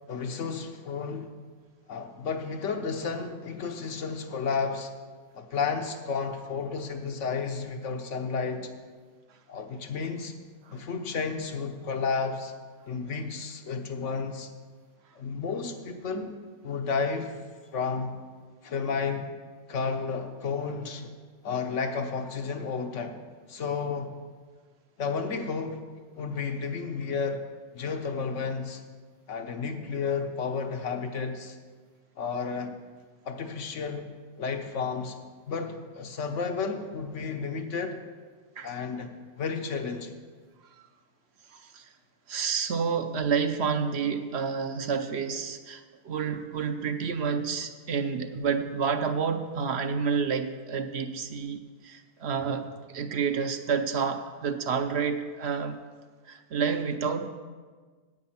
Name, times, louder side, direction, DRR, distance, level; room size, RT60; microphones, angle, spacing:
voice 1, 0.1-1.3 1.9-4.9 5.3-8.7 9.5-10.3 10.7-12.5 12.9-14.5 15.1-16.4 16.6-17.4 17.7-18.1 18.6-19.3 19.7-21.1 21.4-23.2 23.5-24.1 25.0-25.8 26.1-27.4 27.7-28.8 29.3-31.6 32.2-32.8 33.2-35.2 35.5-38.0 38.6-40.1, left 5 dB, 85° left, 6 dB, 1.3 m, -32 dB
voice 2, 41.5-41.9 42.3-55.8 56.3-57.3, right 6 dB, 65° right, 7 dB, 0.9 m, -29 dB
9.6 x 8.6 x 5.7 m, 1.5 s
omnidirectional pair, 1.2 m